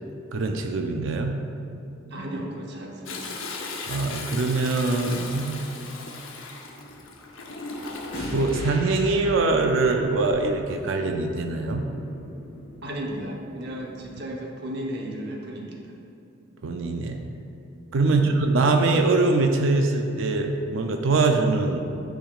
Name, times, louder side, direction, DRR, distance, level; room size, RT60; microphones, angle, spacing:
voice 1, 0.3-1.4 3.9-5.6 8.3-11.9 16.6-17.2 17.9-21.8, right 3 dB, 75° right, 4 dB, 0.4 m, -23 dB
voice 2, 2.1-3.2 12.8-15.9 18.0-18.3, right 1 dB, 55° right, 0 dB, 0.8 m, -34 dB
Toilet flush, 3.1-8.6 10.1-10.6 11.0-11.1, left 3 dB, 90° left, 0.7 m, -37 dB
sound 1, 5.8-6.1 8.1-14.1, equal, 45° left, 1.4 m, -39 dB
8.8 x 5.0 x 2.4 m, 2.7 s
head